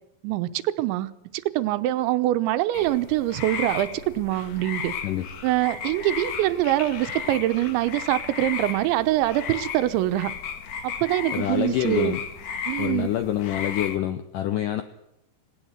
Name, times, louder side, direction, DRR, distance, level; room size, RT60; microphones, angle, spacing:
voice 1, 0.2-3.9 4.2-4.9 5.4-10.3 10.8-12.1 12.7-13.1, right 15 dB, 90° right, 12 dB, 3.2 m, -24 dB
sound 1, 2.7-14.0, left 6 dB, 60° left, 2.2 m, -35 dB
voice 2, 11.3-12.2 12.8-14.8, left 12 dB, 80° left, 9 dB, 1.9 m, -26 dB
18.5 x 18.0 x 8.0 m, 0.82 s
omnidirectional pair, 5.1 m